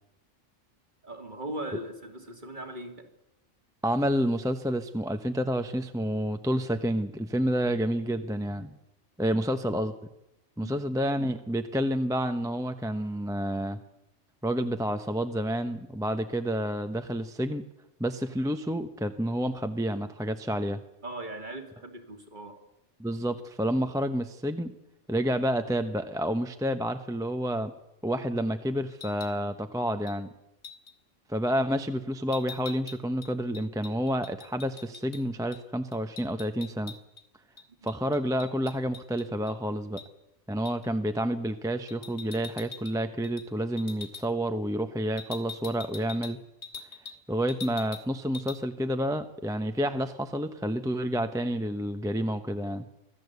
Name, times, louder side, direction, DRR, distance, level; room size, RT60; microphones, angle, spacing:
voice 1, 1.0-3.1 9.2-9.4 10.6-10.8 21.0-22.6, right 1 dB, 40° right, 4 dB, 2.8 m, -39 dB
voice 2, 3.8-8.7 9.2-9.9 10.6-13.8 14.4-17.6 18.0-20.8 23.0-24.7 25.1-27.7 28.0-30.3 31.3-36.9 37.8-40.0 40.5-46.4 47.3-52.8, equal, 5° right, 8 dB, 0.8 m, -29 dB
sound 1, 28.9-29.4 30.1-30.2 30.6-30.9 32.3-35.2 35.5-35.6 35.9-37.2 37.6-39.5 40.0-40.1 40.6-40.9 41.9-43.0 43.2-43.5 43.8-44.2 45.2-47.2 47.5-48.1 48.3-48.6, left 5 dB, 60° left, 2.3 m, -44 dB
25.0 x 15.5 x 8.2 m, 0.87 s
omnidirectional pair, 1.3 m